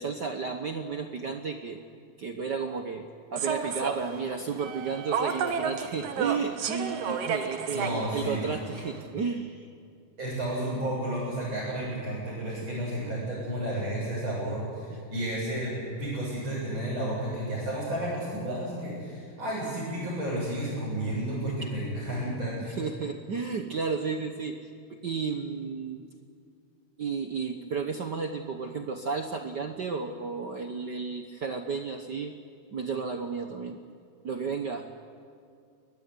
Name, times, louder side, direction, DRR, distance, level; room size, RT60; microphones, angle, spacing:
voice 1, 0.0-1.8 2.2-9.7 14.9-15.0 21.5-21.7 22.6-24.6 24.9-26.0 27.0-32.3 32.7-33.8 34.2-34.9, right 5 dB, 80° right, 6 dB, 0.9 m, -33 dB
Human voice / Subway metro underground, 3.4-9.1, right 6 dB, 60° right, 2.2 m, -33 dB
voice 2, 7.7-8.4 10.2-15.7 16.0-22.8, right 1 dB, 35° right, -8 dB, 8.7 m, -32 dB
23.0 x 19.5 x 9.8 m, 2.4 s
omnidirectional pair, 3.6 m